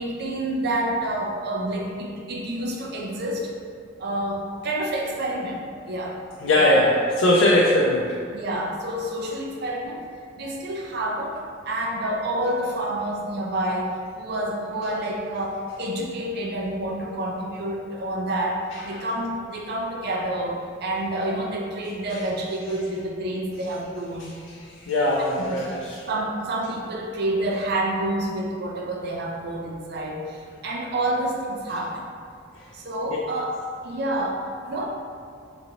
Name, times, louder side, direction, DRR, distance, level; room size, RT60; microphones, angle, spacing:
voice 1, 0.0-3.5 4.0-5.6 5.9-6.2 6.5-6.8 8.3-10.0 10.4-11.4 11.7-24.3 25.5-25.8 26.1-32.1 32.7-33.5 33.8-34.8, right 1 dB, 55° right, -1 dB, 0.5 m, -28 dB
voice 2, 6.4-8.2 24.2-24.3 24.6-26.0, left 1 dB, 80° left, -4 dB, 0.4 m, -20 dB
3.8 x 2.9 x 2.8 m, 2.2 s
head